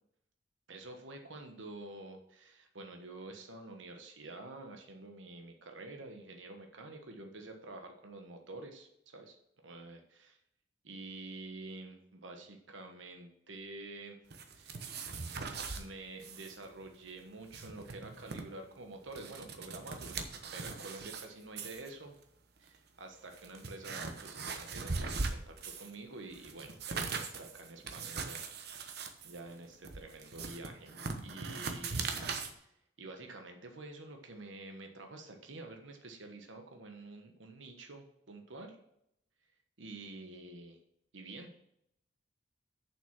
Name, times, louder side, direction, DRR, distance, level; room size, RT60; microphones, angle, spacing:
voice 1, 0.7-9.4 9.6-10.4 10.8-14.2 14.5-14.9 15.7-22.2 22.6-30.9 31.2-32.1 32.5-32.7 33.0-38.8 39.8-40.8 41.1-41.6, right 2 dB, 90° right, 4 dB, 1.3 m, -48 dB
sound 1, 14.3-15.8 16.2-16.6 16.8-16.9 17.3-18.4 18.9-21.2 21.6-21.9 22.7-22.8 23.3-25.9 26.3-32.5, right 4 dB, 60° right, 1.1 m, -40 dB
7.1 x 6.0 x 5.9 m, 0.76 s
head